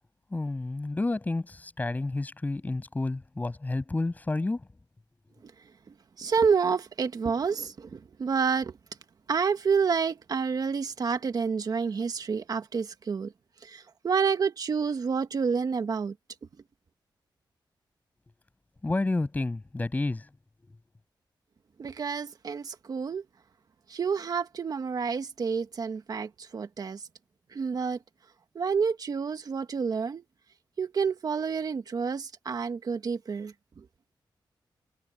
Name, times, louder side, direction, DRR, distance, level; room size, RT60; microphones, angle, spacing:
voice 1, 0.3-4.7 18.8-20.3, left 2 dB, 20° left, 7.6 m, -30 dB
voice 2, 6.2-8.7 9.3-13.3 13.6-16.1 21.8-23.2 23.9-27.0 27.5-28.0 28.5-30.2 30.8-33.5, right 5 dB, 50° right, 1.5 m, -29 dB
wide cardioid pair, 155°, 8 cm